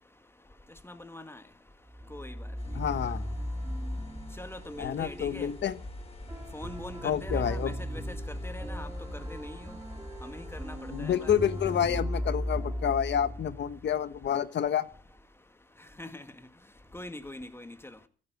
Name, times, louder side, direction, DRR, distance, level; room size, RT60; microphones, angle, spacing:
voice 1, 0.8-1.4 2.1-2.3 4.4-5.5 6.5-8.1 8.4-9.7 10.2-11.3 16.0-16.2 16.9-18.0, left 1 dB, 10° left, 1.7 m, -43 dB
sound 1, 1.9-14.0, equal, 10° right, 2.0 m, -37 dB
sound 2, 2.6-12.0, left 1 dB, 30° left, 4.8 m, -45 dB
voice 2, 2.7-3.3 4.8-5.7 7.0-7.7 10.9-14.8, left 9 dB, 55° left, 1.2 m, -29 dB
15.0 x 8.6 x 9.4 m
cardioid pair, 90°, 21 cm